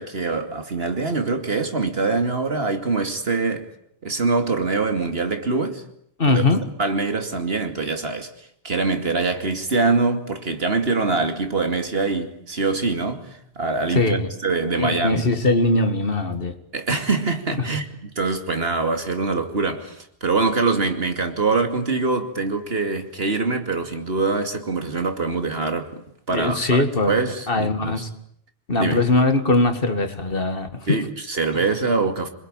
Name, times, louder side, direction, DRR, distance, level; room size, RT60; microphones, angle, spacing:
voice 1, 0.0-3.7 4.0-5.8 6.2-6.4 6.8-8.3 8.6-14.2 14.4-15.3 16.7-17.9 18.2-26.0 26.3-28.0 28.8-29.0 30.9-32.3, right 3 dB, 70° right, 2.7 m, -24 dB
voice 2, 6.2-6.6 13.9-14.3 14.7-16.6 17.6-17.7 26.3-27.2 27.5-28.1 28.7-31.0 31.5-31.6, left 2 dB, 60° left, 2.2 m, -21 dB
27.0 x 21.0 x 9.0 m
omnidirectional pair, 1.1 m